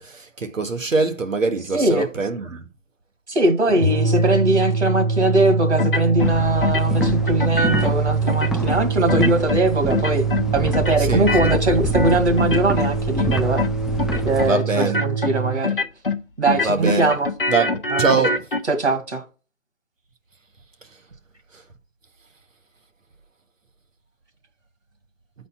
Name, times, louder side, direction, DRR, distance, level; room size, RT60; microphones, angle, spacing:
voice 1, 0.0-2.7 11.0-11.5 14.4-15.0 16.6-17.1 17.5-18.4 21.5-21.6, right 4 dB, 85° right, 1.6 m, -23 dB
voice 2, 1.7-2.1 3.3-10.3 10.5-13.6 14.3-15.8 16.4-17.3 17.9-18.0 18.7-19.2, right 2 dB, 60° right, 2.0 m, -21 dB
sound 1, 3.7-15.6, right 5 dB, 45° right, 1.0 m, -24 dB
sound 2, 5.8-6.3 6.6-7.9 8.3-8.8 9.1-9.6 9.9-10.5 10.7-12.9 13.2-13.7 14.0-14.5 14.8-15.3 15.6-16.2 16.4-18.6, left 3 dB, 45° left, 0.7 m, -24 dB
sound 3, 6.2-14.5, left 3 dB, ahead, 0.3 m, -29 dB
8.3 x 4.2 x 5.9 m
hypercardioid pair, 180°, 38 cm